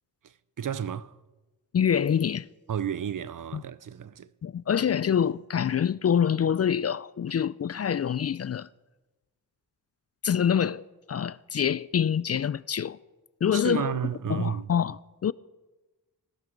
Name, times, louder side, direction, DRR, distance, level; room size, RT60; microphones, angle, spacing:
voice 1, 0.6-1.1 2.7-4.3 13.5-14.7, right 8 dB, 55° right, 0.7 m, -32 dB
voice 2, 1.7-2.5 3.5-3.6 4.4-8.7 10.2-10.8 11.1-13.0 13.4-14.0 14.3-15.3, left 8 dB, 40° left, 0.4 m, -26 dB
19.5 x 12.5 x 5.2 m
cardioid pair, 65°, 39 cm